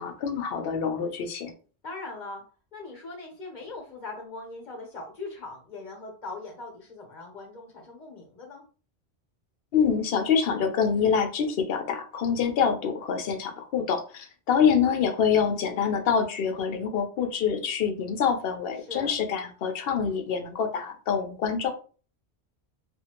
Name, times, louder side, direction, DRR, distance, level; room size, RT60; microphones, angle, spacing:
voice 1, 0.0-1.5 9.7-21.7, left 7 dB, 70° left, 6 dB, 0.7 m, -26 dB
voice 2, 1.8-2.4 2.7-8.6 18.8-19.1, left 3 dB, 50° left, 0 dB, 1.0 m, -40 dB
2.6 x 2.4 x 2.8 m, 0.38 s
omnidirectional pair, 1.1 m